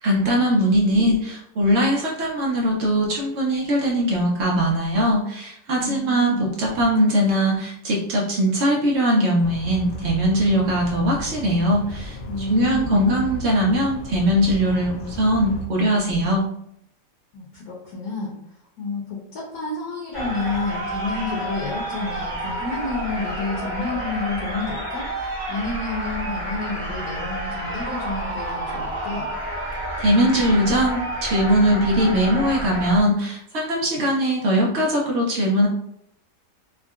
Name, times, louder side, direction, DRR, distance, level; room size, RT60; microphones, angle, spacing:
voice 1, 0.0-12.2 12.5-16.4 30.0-35.7, equal, 75° right, -3 dB, 0.6 m, -20 dB
voice 2, 5.8-6.6 12.2-13.1 17.3-18.3 18.8-29.3, left 3 dB, 65° left, -4 dB, 1.1 m, -30 dB
sound 1, 9.4-15.7, equal, 80° left, 0.6 m, -35 dB
sound 2, 20.1-33.0, right 1 dB, 20° left, 0.7 m, -30 dB
3.5 x 2.1 x 2.4 m, 0.72 s
omnidirectional pair, 1.9 m